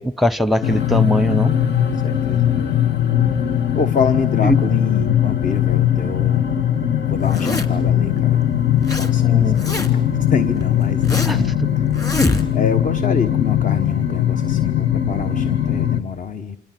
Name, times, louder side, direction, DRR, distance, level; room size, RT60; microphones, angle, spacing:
voice 1, 0.0-1.5 4.4-4.6 9.2-9.6 11.3-11.7, equal, ahead, 1.0 m, -20 dB
sound 1, 0.6-16.0, left 10 dB, 65° left, 1.8 m, -19 dB
voice 2, 1.9-2.8 3.7-6.5 7.1-8.5 9.0-11.4 11.8-11.9 12.5-16.6, left 6 dB, 40° left, 1.1 m, -26 dB
Zipper (clothing), 7.2-7.9 8.5-9.1 9.4-10.1 10.6-11.5 11.9-12.8, left 1 dB, 15° left, 2.8 m, -24 dB
28.0 x 26.5 x 7.8 m
cardioid pair, 90°, 20 cm